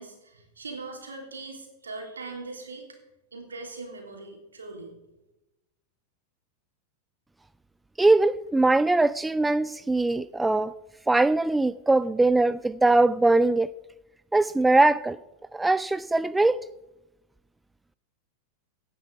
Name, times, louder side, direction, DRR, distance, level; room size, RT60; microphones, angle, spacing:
voice 1, 0.0-2.9 3.3-4.9, right 3 dB, 75° right, 2 dB, 3.4 m, -40 dB
voice 2, 8.0-10.7 11.1-13.7 14.3-15.2 15.5-16.6, right 2 dB, 5° right, 17 dB, 0.3 m, -21 dB
17.0 x 10.0 x 4.8 m, 0.96 s
figure-of-eight pair, 90°, 0 cm